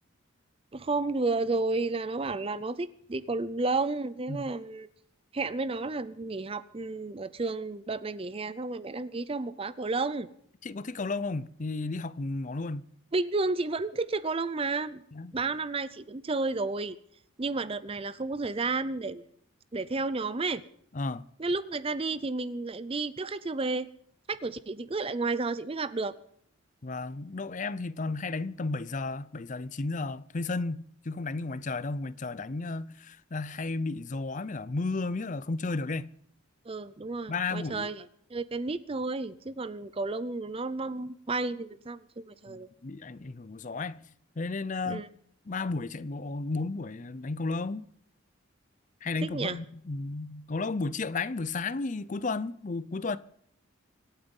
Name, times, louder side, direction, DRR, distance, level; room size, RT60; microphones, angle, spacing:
voice 1, 0.7-4.9 5.3-10.3 13.1-15.0 15.3-17.0 17.4-19.2 19.7-20.6 21.4-23.9 24.3-26.1 36.7-38.0 38.3-42.7 44.9-45.1 49.2-49.6, right 3 dB, 25° right, 0.5 m, -32 dB
voice 2, 10.6-12.9 15.1-15.4 20.9-21.2 26.8-36.1 37.3-37.9 42.5-44.0 44.4-45.0 45.5-47.8 49.0-53.2, left 3 dB, 35° left, 0.5 m, -33 dB
25.5 x 8.9 x 5.5 m
head